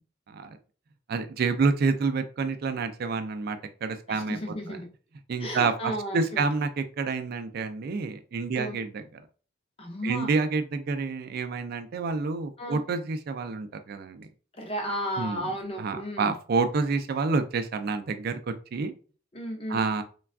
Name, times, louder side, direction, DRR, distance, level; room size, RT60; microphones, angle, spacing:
voice 1, 1.1-4.4 4.7-4.8 5.3-9.0 10.0-14.3 15.2-15.4 15.8-18.9 19.7-20.0, right 4 dB, 50° right, 9 dB, 0.3 m, -28 dB
voice 2, 4.1-4.9 5.4-6.4 8.5-8.8 9.8-10.3 12.6-12.8 14.5-16.3 19.3-19.8, equal, 30° left, 2 dB, 0.6 m, -34 dB
3.3 x 2.2 x 2.3 m, 0.39 s
head